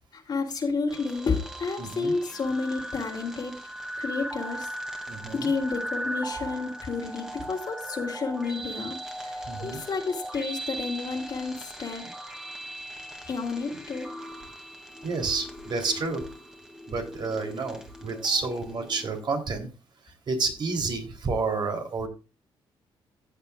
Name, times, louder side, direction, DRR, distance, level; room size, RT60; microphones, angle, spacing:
voice 1, 0.3-3.5 4.0-4.7 5.3-9.0 9.2-12.1 13.3-14.1, left 4 dB, 45° left, 1 dB, 2.9 m, -30 dB
sound 1, 0.9-19.2, right 1 dB, 5° right, 2.2 m, -39 dB
voice 2, 1.8-2.1 5.1-5.5 9.5-9.8 15.0-16.2 16.9-19.7 20.3-22.1, right 4 dB, 50° right, 3 dB, 3.2 m, -30 dB
15.0 x 7.4 x 2.3 m, 0.32 s
cardioid pair, 100°, 10 cm